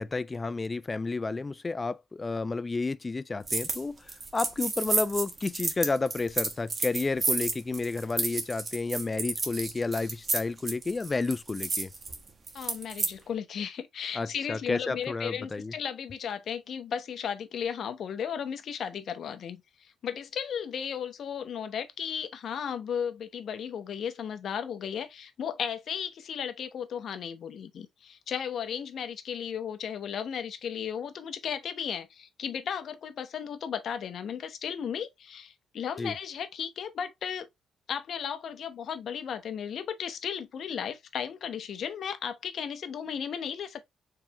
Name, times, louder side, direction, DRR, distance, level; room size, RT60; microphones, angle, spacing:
voice 1, 0.0-4.0 4.3-11.9 14.1-15.7 36.0-36.1, left 3 dB, 25° left, 0.4 m, -31 dB
sound 1, 3.5-3.8 4.1-13.1, right 3 dB, 35° right, 1.2 m, -31 dB
voice 2, 12.5-37.5 37.9-43.8, left 8 dB, 60° left, 0.8 m, -35 dB
4.7 x 3.5 x 2.9 m
cardioid pair, 90°, 0 cm